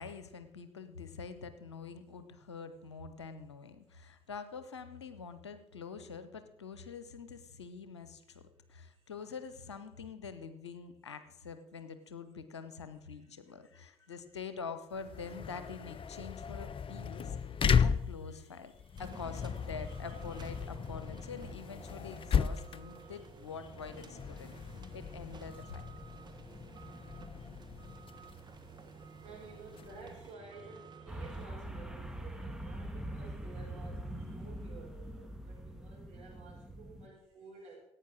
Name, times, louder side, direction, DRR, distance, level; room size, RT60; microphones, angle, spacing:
voice 1, 0.0-8.4 8.7-17.4 17.7-24.5 24.9-25.9, left 5 dB, 85° left, 11 dB, 0.9 m, -45 dB
sound 1, 14.9-30.3, left 7 dB, 40° left, 0.7 m, -36 dB
voice 2, 17.2-18.0 18.4-19.0 19.8-19.9 23.0-23.2 24.5-24.8 27.3-27.6 28.3-37.8, right 3 dB, 50° right, -2 dB, 7.1 m, -53 dB
sound 2, 19.0-31.5, right 5 dB, 30° right, 1.7 m, -53 dB
sound 3, 31.1-37.1, right 1 dB, 5° right, 1.9 m, -43 dB
16.0 x 9.0 x 6.3 m, 0.81 s
figure-of-eight pair, 50°, 14 cm